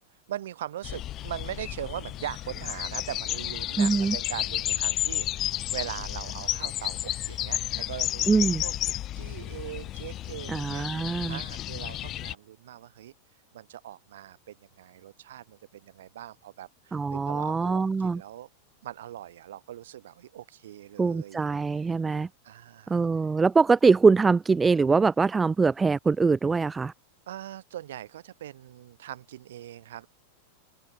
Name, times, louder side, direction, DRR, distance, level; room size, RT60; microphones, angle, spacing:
voice 1, 0.3-8.7 9.2-13.1 13.5-18.5 18.8-21.4 22.4-23.0 27.3-30.1, right 12 dB, 60° right, 6.3 m, -41 dB
sound 1, 0.8-12.3, left 13 dB, 35° left, 1.2 m, -32 dB
voice 2, 3.8-4.2 8.3-8.6 10.5-11.4 16.9-18.2 21.0-22.3 22.9-26.9, right 4 dB, 15° right, 1.1 m, -23 dB
figure-of-eight pair, 90°, 0 cm